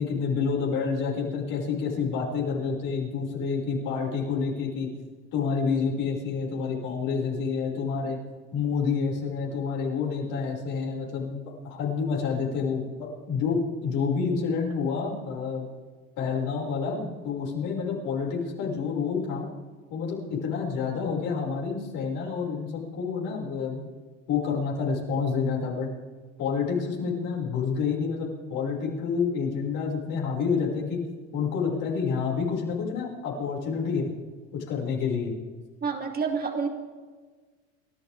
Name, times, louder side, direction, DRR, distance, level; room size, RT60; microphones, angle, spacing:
voice 1, 0.0-4.9 5.3-8.2 8.5-15.7 16.2-19.5 19.9-23.8 24.3-25.9 26.4-31.0 31.3-34.1 34.5-35.3, left 5 dB, 70° left, -3 dB, 5.8 m, -28 dB
voice 2, 35.8-36.7, right 5 dB, 30° right, 1 dB, 3.6 m, -28 dB
30.0 x 12.5 x 3.6 m, 1.4 s
supercardioid pair, 85°, 33 cm